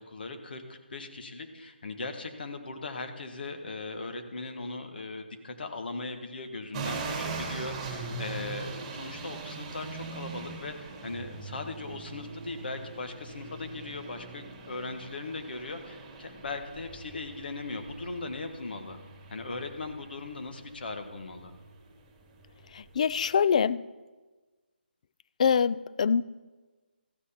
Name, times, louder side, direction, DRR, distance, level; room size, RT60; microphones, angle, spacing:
voice 1, 0.0-19.0 19.3-21.5, left 3 dB, 60° left, 6 dB, 1.4 m, -39 dB
sound 1, 6.7-23.3, right 4 dB, 20° right, 1.9 m, -41 dB
voice 2, 22.7-23.8 25.4-26.2, left 7 dB, 40° left, 18 dB, 0.3 m, -24 dB
14.0 x 6.4 x 5.7 m, 1.3 s
hypercardioid pair, 160°, 6 cm